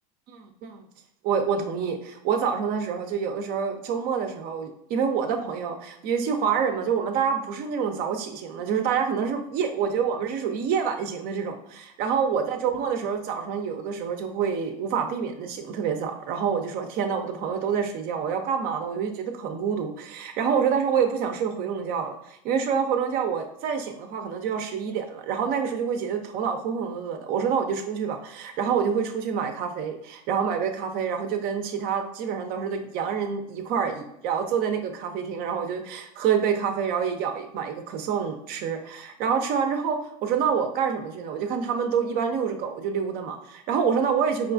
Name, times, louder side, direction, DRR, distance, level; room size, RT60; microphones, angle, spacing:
voice 1, 0.3-0.8 1.2-44.5, right 7 dB, 45° right, 6 dB, 0.5 m, -27 dB
4.9 x 2.3 x 2.5 m, 0.82 s
supercardioid pair, 115°, 21 cm